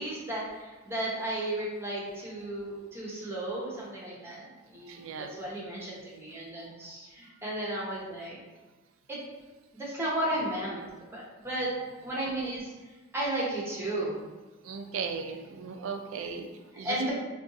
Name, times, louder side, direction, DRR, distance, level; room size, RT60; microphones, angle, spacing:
voice 1, 0.0-5.0 5.4-8.4 9.1-9.2 9.7-11.7 12.0-12.7 13.1-14.2 16.8-17.1, right 1 dB, 10° right, -5 dB, 0.7 m, -34 dB
voice 2, 4.9-5.3 14.6-17.0, right 5 dB, 70° right, 5 dB, 0.3 m, -37 dB
2.5 x 2.3 x 3.6 m, 1.3 s
head